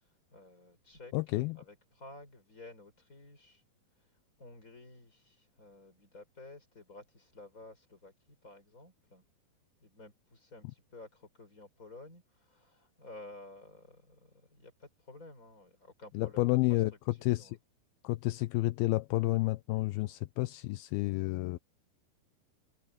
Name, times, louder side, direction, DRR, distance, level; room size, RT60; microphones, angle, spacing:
voice 1, 0.3-1.1 1.5-3.6 4.4-9.2 9.8-16.5 17.2-17.6 18.0-18.1, left 2 dB, 20° left, 6.3 m, -53 dB
voice 2, 1.1-1.6 16.1-16.9 17.2-17.6 18.0-21.6, left 20 dB, 80° left, 2.3 m, -30 dB
omnidirectional pair, 4.8 m